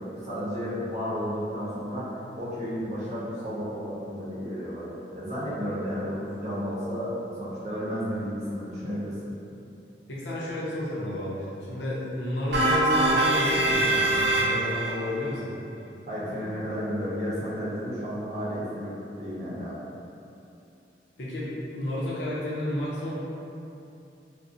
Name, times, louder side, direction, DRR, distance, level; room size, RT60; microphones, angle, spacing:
voice 1, 0.0-4.9 5.1-9.3 16.0-19.7, equal, 40° right, -10 dB, 0.7 m, -32 dB
voice 2, 10.1-15.5 21.2-23.1, left 1 dB, 90° left, -7 dB, 0.6 m, -31 dB
sound 1, 12.5-14.9, right 2 dB, 90° right, 0.5 m, -23 dB
2.5 x 2.0 x 2.4 m, 2.7 s
head